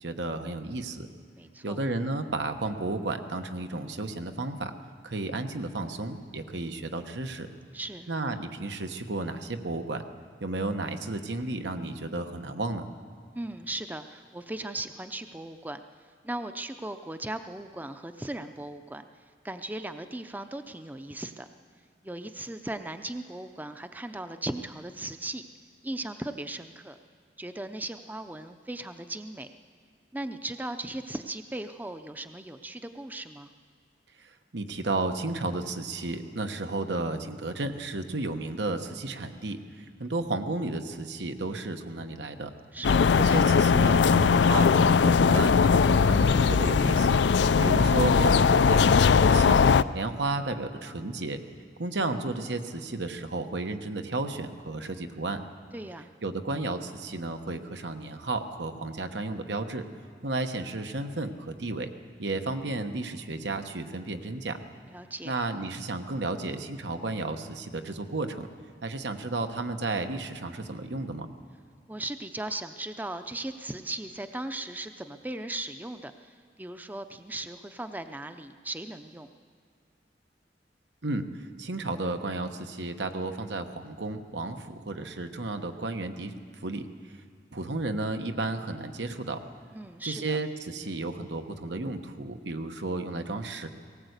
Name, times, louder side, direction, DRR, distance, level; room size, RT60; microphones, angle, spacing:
voice 1, 0.0-1.1 1.6-4.7 5.0-7.5 8.1-10.0 10.4-12.9 34.5-42.5 43.2-47.2 47.6-49.6 49.9-51.4 51.8-55.4 56.2-59.8 60.2-61.9 62.2-64.6 65.2-68.5 68.8-71.3 81.0-81.3 81.6-86.3 86.6-86.8 87.5-89.4 90.0-93.7, right 2 dB, 85° right, 7 dB, 1.2 m, -33 dB
voice 2, 1.3-1.8 7.7-8.1 13.3-15.8 16.2-19.1 19.4-21.5 22.0-25.4 25.8-27.0 27.4-29.5 30.1-33.5 42.7-43.2 55.7-56.1 64.9-65.4 71.9-79.3 89.7-90.4, right 1 dB, 10° right, 9 dB, 0.6 m, -37 dB
sound 1, 42.8-49.8, left 5 dB, 85° left, 0.4 m, -20 dB
18.0 x 18.0 x 8.1 m, 2.1 s
head